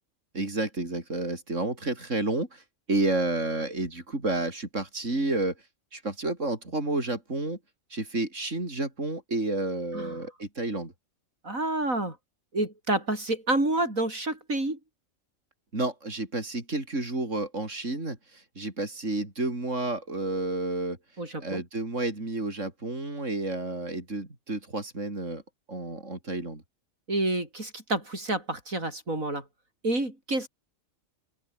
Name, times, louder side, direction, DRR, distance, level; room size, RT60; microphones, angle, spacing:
voice 1, 0.3-5.5 5.9-7.6 7.9-10.9 15.7-21.0 21.4-25.4 25.7-26.6, right 2 dB, 65° right, 6.0 m, -30 dB
voice 2, 11.4-12.2 12.5-14.8 21.2-21.6 27.1-29.4 29.8-30.5, right 2 dB, 85° right, 7.3 m, -28 dB
open air
omnidirectional pair, 1.4 m